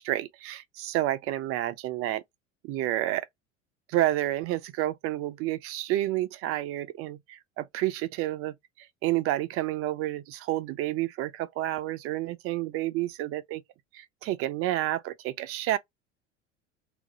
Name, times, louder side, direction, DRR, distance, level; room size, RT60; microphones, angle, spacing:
voice 1, 0.0-2.2 2.6-3.3 3.9-13.6 13.9-15.8, right 14 dB, 40° right, 0.4 m, -30 dB
2.4 x 2.0 x 3.9 m
hypercardioid pair, 75°, 37 cm